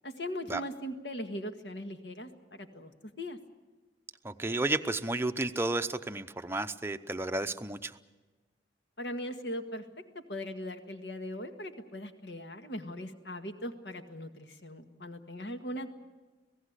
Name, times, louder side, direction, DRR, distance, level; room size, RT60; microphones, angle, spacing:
voice 1, 0.0-2.9 3.2-3.4 9.0-9.8 10.3-15.9, equal, 65° left, 6 dB, 1.8 m, -39 dB
voice 2, 4.2-8.0, right 2 dB, 15° right, 7 dB, 0.7 m, -32 dB
26.5 x 17.5 x 8.2 m, 1.2 s
head